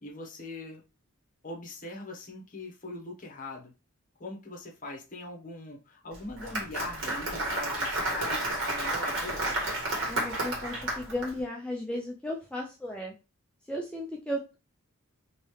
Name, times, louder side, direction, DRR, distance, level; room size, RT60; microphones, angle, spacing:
voice 1, 0.0-0.8 1.4-3.7 4.2-9.6, left 2 dB, 40° left, 1 dB, 0.9 m, -41 dB
Applause, 6.1-11.3, right 1 dB, 60° right, 1.4 m, -31 dB
voice 2, 10.1-13.1 13.7-14.6, left 1 dB, 5° left, -1 dB, 0.4 m, -35 dB
3.1 x 2.7 x 3.1 m, 0.30 s
head